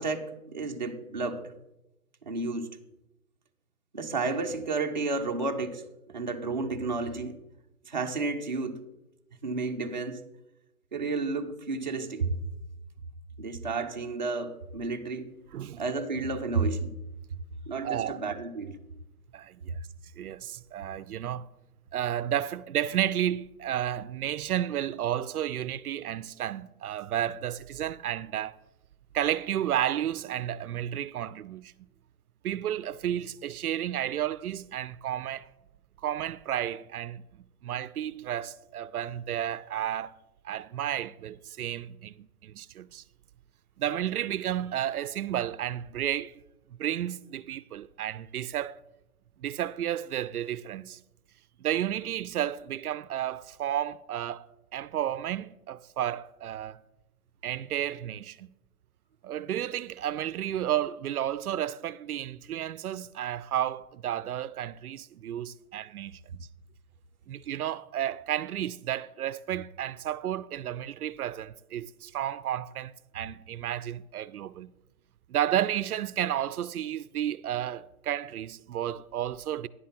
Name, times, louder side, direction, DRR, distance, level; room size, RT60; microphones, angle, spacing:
voice 1, 0.0-1.5 2.3-2.7 3.9-7.4 7.9-8.8 9.4-10.2 10.9-12.4 13.4-15.3 15.8-16.9 17.7-18.8, right 3 dB, 30° right, 0.7 m, -31 dB
voice 2, 17.8-18.2 19.3-19.8 20.2-21.5 21.9-28.6 29.1-31.7 32.4-35.5 36.0-37.2 37.6-40.1 40.4-43.0 43.8-46.4 46.8-48.8 49.4-51.0 51.6-54.5 54.7-56.8 57.4-58.5 59.2-66.5 67.3-74.7 75.3-79.7, right 11 dB, 80° right, 0.5 m, -32 dB
10.5 x 7.5 x 4.4 m
hypercardioid pair, 175°, 44 cm